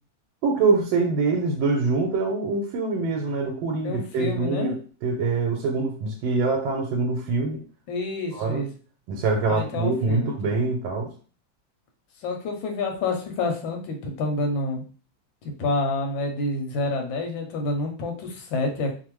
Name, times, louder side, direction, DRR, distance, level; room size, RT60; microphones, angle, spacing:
voice 1, 0.4-7.6 8.3-8.7 9.1-11.1, right 3 dB, 85° right, 2 dB, 1.4 m, -24 dB
voice 2, 3.8-4.8 7.9-8.7 9.5-10.3 12.2-14.8 15.4-18.9, left 2 dB, 80° left, 3 dB, 1.4 m, -28 dB
3.4 x 2.1 x 3.0 m, 0.40 s
omnidirectional pair, 2.1 m